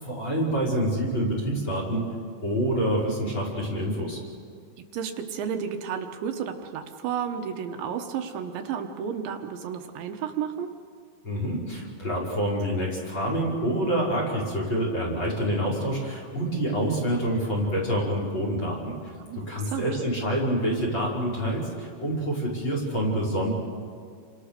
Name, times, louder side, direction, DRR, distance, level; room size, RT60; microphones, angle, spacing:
voice 1, 0.0-2.1 2.4-4.2 11.2-23.5, equal, 25° left, -3 dB, 5.2 m, -27 dB
voice 2, 4.9-10.7 19.3-19.9, right 7 dB, 75° right, 4 dB, 3.3 m, -32 dB
30.0 x 25.0 x 6.8 m, 2.2 s
omnidirectional pair, 5.5 m